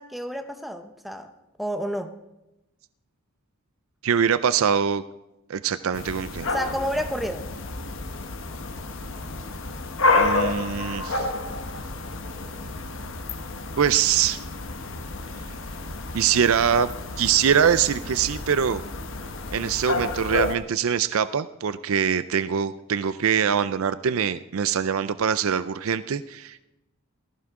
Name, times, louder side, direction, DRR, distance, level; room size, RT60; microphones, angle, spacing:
voice 1, 0.0-1.3 1.6-2.1 6.5-7.5, equal, ahead, 6 dB, 0.7 m, -30 dB
voice 2, 4.0-5.0 5.5-6.5 10.2-11.3 13.8-14.4 16.1-16.9 17.2-18.8 19.5-26.6, right 7 dB, 65° right, 14 dB, 0.4 m, -23 dB
sound 1, 5.9-20.6, left 2 dB, 60° left, 1.2 m, -30 dB
19.0 x 15.0 x 3.7 m, 0.95 s
head